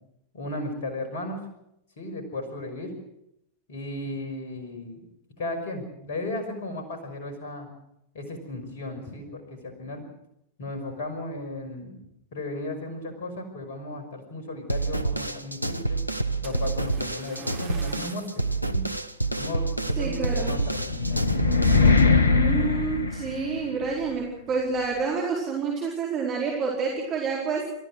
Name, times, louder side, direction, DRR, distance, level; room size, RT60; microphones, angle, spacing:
voice 1, 0.3-1.4 2.0-2.9 3.7-5.0 5.4-7.7 8.1-10.1 10.6-11.9 12.3-16.0 16.4-18.8 19.4-21.2, left 2 dB, 55° left, 6 dB, 5.6 m, -35 dB
sound 1, 14.7-22.0, right 2 dB, 90° right, 0.8 m, -28 dB
Splash splatter, 16.4-18.5 19.1-19.4 20.0-20.1, right 5 dB, 50° right, 4.2 m, -45 dB
voice 2, 20.0-20.5 22.3-27.7, right 5 dB, 30° right, -3 dB, 4.7 m, -28 dB
sound 2, 20.4-23.8, left 4 dB, 70° left, 1.4 m, -21 dB
29.0 x 15.0 x 6.4 m, 0.80 s
figure-of-eight pair, 90°, 0 cm